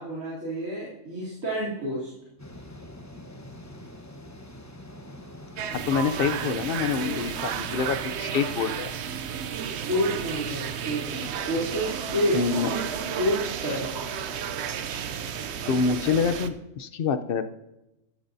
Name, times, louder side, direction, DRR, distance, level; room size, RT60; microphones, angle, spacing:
voice 1, 0.0-2.1 9.7-12.4 12.7-12.8 13.1-14.0, equal, 85° right, -7 dB, 3.6 m, -29 dB
sound 1, 2.4-16.0, left 1 dB, 15° left, 1.0 m, -47 dB
sound 2, 5.6-16.5, right 8 dB, 60° right, 0.9 m, -32 dB
voice 2, 5.9-8.9 12.3-12.7 15.7-17.5, left 5 dB, 55° left, 10 dB, 0.8 m, -26 dB
14.5 x 13.0 x 2.7 m, 0.92 s
omnidirectional pair, 1.4 m